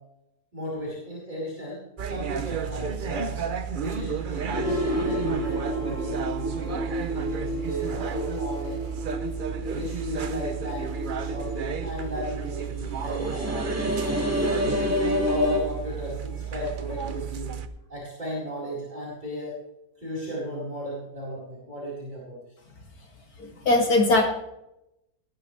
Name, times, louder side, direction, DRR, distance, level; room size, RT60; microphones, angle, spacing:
voice 1, 0.5-1.8 2.1-3.4 3.7-8.8 9.7-14.8 15.2-17.5 17.9-19.6 20.0-22.4, equal, 25° right, -7 dB, 4.6 m, -35 dB
sound 1, 2.0-17.7, right 7 dB, 55° right, 0.6 m, -33 dB
sound 2, 4.5-15.6, equal, 10° right, 2.0 m, -30 dB
voice 2, 23.4-24.2, left 2 dB, 65° left, 1 dB, 3.0 m, -20 dB
19.5 x 10.5 x 3.3 m, 0.86 s
omnidirectional pair, 1.7 m